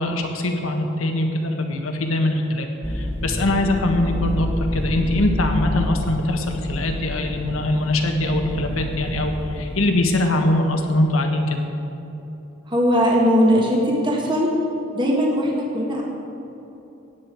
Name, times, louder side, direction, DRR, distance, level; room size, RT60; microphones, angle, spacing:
voice 1, 0.0-2.7 2.9-11.6, left 1 dB, 80° left, 3 dB, 1.5 m, -22 dB
sound 1, 2.8-9.9, left 1 dB, 10° left, 1.2 m, -28 dB
voice 2, 12.7-14.5 14.9-16.0, equal, 25° right, -2 dB, 1.7 m, -19 dB
15.5 x 9.9 x 4.6 m, 3.0 s
head